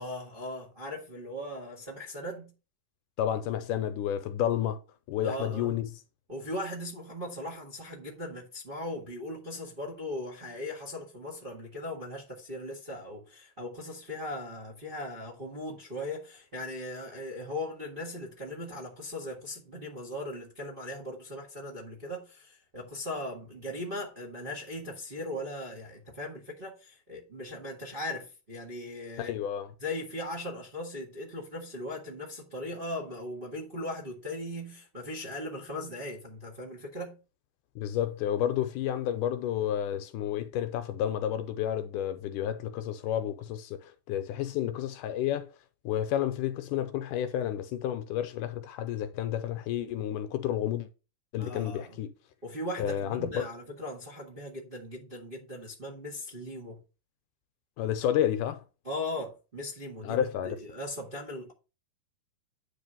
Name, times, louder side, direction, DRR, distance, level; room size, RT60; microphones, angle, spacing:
voice 1, 0.0-2.5 5.2-5.7 6.3-29.3 29.8-37.2 51.4-52.0 52.4-56.8 58.8-61.5, left 1 dB, 30° right, 1.0 m, -38 dB
voice 2, 3.2-4.8 5.1-5.9 29.2-29.7 37.8-45.5 45.9-50.9 51.3-52.1 52.8-53.5 57.8-58.6 60.0-60.6, left 10 dB, 80° left, 2.2 m, -30 dB
9.5 x 3.8 x 5.6 m
omnidirectional pair, 3.8 m